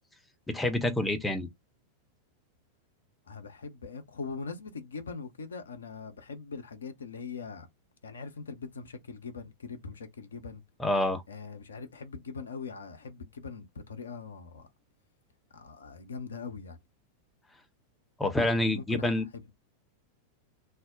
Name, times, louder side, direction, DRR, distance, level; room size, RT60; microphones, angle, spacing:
voice 1, 0.5-1.5 10.8-11.2 18.2-19.3, left 1 dB, 10° left, 0.6 m, -27 dB
voice 2, 3.3-7.7 8.0-10.6 11.3-14.7 15.5-16.8 18.5-19.5, left 4 dB, 70° left, 0.6 m, -41 dB
2.5 x 2.0 x 3.6 m
figure-of-eight pair, 90°, 0 cm